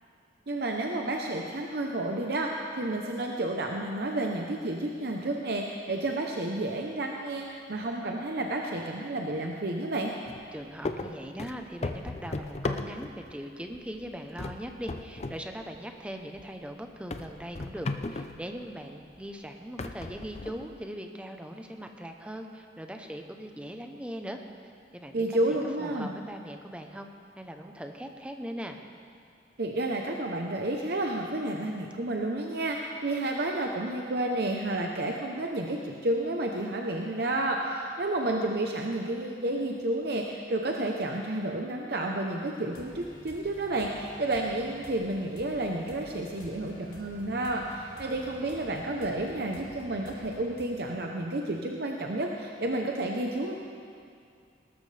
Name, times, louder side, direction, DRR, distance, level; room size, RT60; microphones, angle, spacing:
voice 1, 0.5-10.1 25.1-26.1 29.6-53.5, right 1 dB, 60° right, 1 dB, 0.8 m, -31 dB
sound 1, 10.3-10.5 10.8-13.3 13.7-14.1 14.4-15.4 15.7-15.8 16.4-16.5 17.1-18.4 19.1-19.2 19.8-20.8, left 2 dB, 35° left, 0.5 m, -35 dB
voice 2, 10.5-24.4 24.9-25.4 25.8-27.1 27.4-28.8, equal, 5° right, 4 dB, 0.8 m, -40 dB
sound 2, 42.7-50.6, left 1 dB, 55° left, 1.7 m, -50 dB
18.5 x 13.0 x 3.4 m, 2.3 s
head